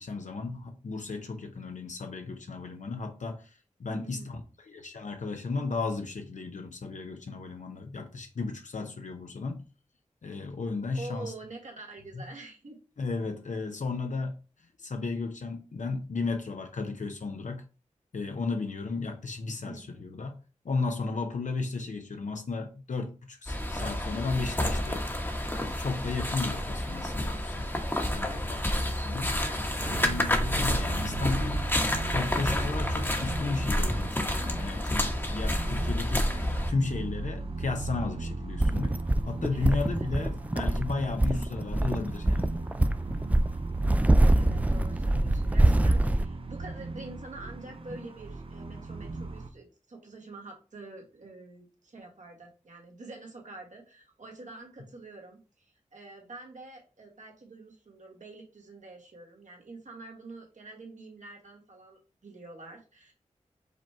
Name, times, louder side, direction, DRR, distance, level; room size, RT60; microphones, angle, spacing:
voice 1, 0.0-9.7 10.2-11.3 12.1-12.2 13.0-17.6 18.1-25.0 25.5-27.7 28.1-29.4 29.8-31.7 32.1-39.0 39.3-42.5, left 3 dB, 65° left, 0.7 m, -34 dB
voice 2, 3.9-4.4 10.9-12.8 19.6-20.1 39.5-40.2 44.3-63.1, right 2 dB, 70° right, 1.5 m, -46 dB
sound 1, 23.5-36.7, left 1 dB, 15° left, 1.0 m, -30 dB
sound 2, 29.8-49.5, right 3 dB, 45° right, 0.6 m, -37 dB
sound 3, 38.6-46.2, right 1 dB, 10° right, 0.3 m, -25 dB
5.1 x 2.3 x 4.3 m
cardioid pair, 40°, 13 cm